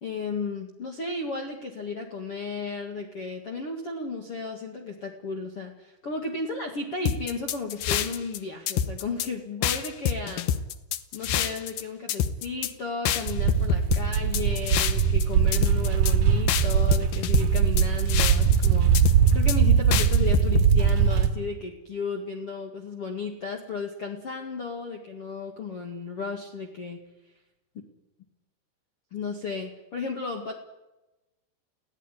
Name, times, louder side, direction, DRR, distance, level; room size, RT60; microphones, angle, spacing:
voice 1, 0.0-10.5 11.1-27.0 29.1-30.5, left 4 dB, 45° left, 3 dB, 2.2 m, -34 dB
sound 1, 7.1-8.4 8.7-9.3 9.6-11.8 12.1-12.7 13.1-15.2 15.5-16.1 16.5-18.7 19.0-19.6 19.9-20.7, left 10 dB, 70° left, 2.3 m, -26 dB
sound 2, 13.3-21.3, right 7 dB, 60° right, 2.9 m, -21 dB
29.5 x 16.5 x 10.0 m, 1.0 s
omnidirectional pair, 4.9 m